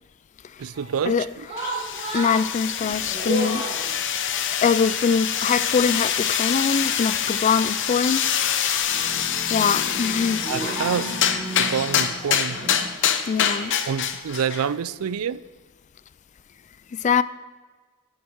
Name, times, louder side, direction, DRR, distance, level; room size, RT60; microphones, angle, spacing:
voice 1, 0.6-1.3 10.5-11.2 11.6-12.6 13.9-15.4, right 7 dB, 85° right, 0.4 m, -27 dB
sound 1, 0.7-12.8, right 2 dB, 30° right, 3.8 m, -35 dB
sound 2, 1.6-14.7, left 8 dB, 60° left, 0.8 m, -25 dB
voice 2, 2.1-3.7 4.6-8.2 9.5-10.4 13.3-13.7 16.9-17.2, left 6 dB, 35° left, 0.3 m, -23 dB
10.5 x 10.0 x 4.4 m
head